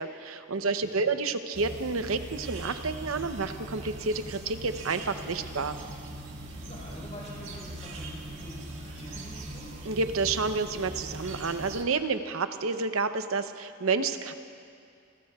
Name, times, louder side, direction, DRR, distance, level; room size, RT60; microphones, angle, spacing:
voice 1, 0.0-5.8 9.8-14.3, right 4 dB, 90° right, 9 dB, 0.8 m, -30 dB
voice 2, 0.5-1.1 6.6-9.7, equal, 35° left, -6 dB, 4.5 m, -46 dB
sound 1, 1.5-11.8, right 1 dB, 60° right, 1.9 m, -41 dB
28.5 x 19.5 x 2.4 m, 2.5 s
head